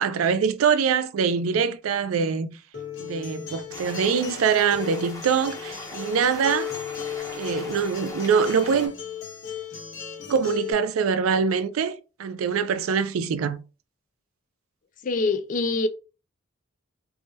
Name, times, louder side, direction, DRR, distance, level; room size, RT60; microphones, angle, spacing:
voice 1, 0.0-2.6 3.0-6.7 7.3-8.9 10.3-13.6, right 6 dB, 75° right, 0.4 m, -24 dB
Acoustic guitar, 2.7-10.7, left 8 dB, 65° left, 1.2 m, -36 dB
sound 1, 3.7-8.9, left 1 dB, 15° left, 0.7 m, -40 dB
voice 2, 15.0-15.9, left 3 dB, 40° left, 0.3 m, -24 dB
3.5 x 2.1 x 2.7 m
head